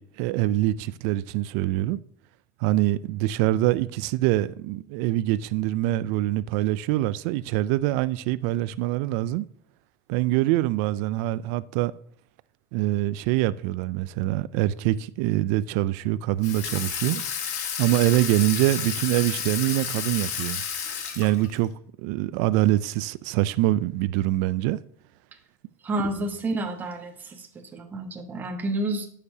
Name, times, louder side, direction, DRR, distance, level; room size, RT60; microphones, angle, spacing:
voice 1, 0.0-2.0 2.6-9.5 10.1-11.9 12.7-17.2 17.8-20.6 21.2-21.7 22.0-24.8, right 16 dB, 65° right, 0.4 m, -24 dB
Water tap faucet / Sink (filling or washing), 16.4-21.7, left 7 dB, 80° left, 1.4 m, -31 dB
voice 2, 25.8-27.5 27.7-29.1, right 2 dB, 20° right, 1.2 m, -29 dB
9.7 x 6.6 x 2.8 m
supercardioid pair, 135°, 9 cm